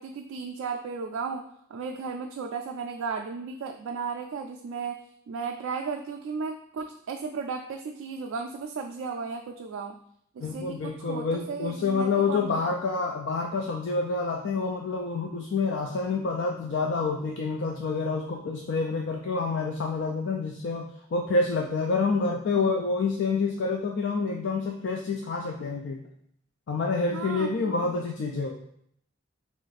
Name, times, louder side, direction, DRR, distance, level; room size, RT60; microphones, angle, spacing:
voice 1, 0.0-5.0 5.3-10.0 10.4-12.7 27.1-27.9, right 5 dB, 75° right, 3 dB, 0.3 m, -35 dB
voice 2, 10.4-26.0 26.7-28.6, left 4 dB, 60° left, 1 dB, 0.3 m, -28 dB
3.6 x 2.4 x 4.0 m, 0.68 s
head